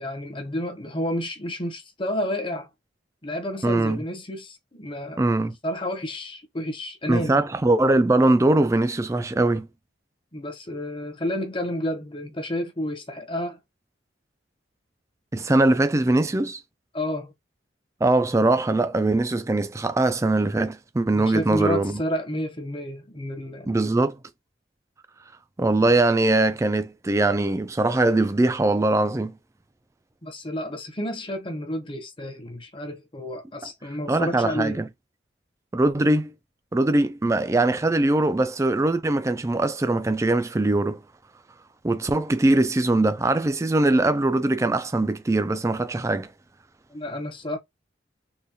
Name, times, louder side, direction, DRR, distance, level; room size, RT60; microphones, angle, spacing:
voice 1, 0.0-2.7 3.2-5.3 5.6-7.4 10.3-13.6 16.9-17.3 21.1-23.8 30.2-34.8 46.9-47.6, left 1 dB, 25° left, 0.8 m, -30 dB
voice 2, 3.6-4.0 5.2-5.5 7.1-9.7 15.3-16.6 18.0-22.0 23.7-24.2 25.6-29.3 34.1-34.9 35.7-36.3 36.7-41.0 41.8-46.3, right 2 dB, 15° right, 0.3 m, -21 dB
3.8 x 2.3 x 2.7 m
head